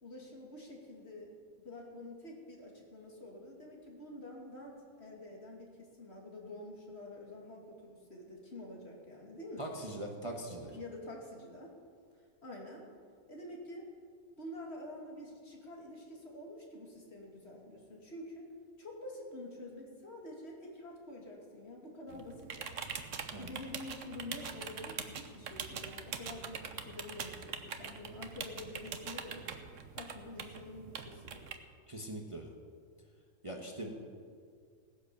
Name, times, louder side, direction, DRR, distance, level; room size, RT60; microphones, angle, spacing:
voice 1, 0.0-1.3 1.6-9.7 10.7-11.7 12.4-12.9 13.3-13.8 14.4-18.5 18.8-22.9 23.4-29.5 29.9-31.4 33.8-33.9, left 1 dB, 45° left, -1 dB, 2.7 m, -48 dB
voice 2, 9.6-10.7 23.3-23.5 31.9-32.5 33.4-33.9, right 1 dB, 25° right, 1 dB, 1.3 m, -41 dB
sound 1, 22.1-31.6, right 6 dB, 60° right, 1.3 m, -43 dB
17.5 x 10.0 x 7.0 m, 2.1 s
omnidirectional pair, 1.5 m